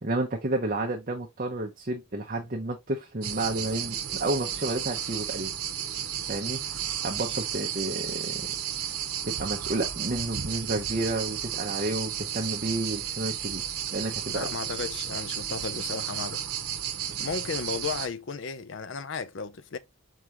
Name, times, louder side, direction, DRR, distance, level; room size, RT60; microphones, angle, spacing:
voice 1, 0.0-5.5 6.3-6.6 7.0-8.5 9.3-13.6 13.9-14.5, right 2 dB, 40° right, 0.7 m, -31 dB
sound 1, 3.2-18.1, right 9 dB, 85° right, 0.8 m, -33 dB
voice 2, 14.3-16.4 17.2-19.8, left 5 dB, 55° left, 0.5 m, -34 dB
4.7 x 3.8 x 2.8 m
head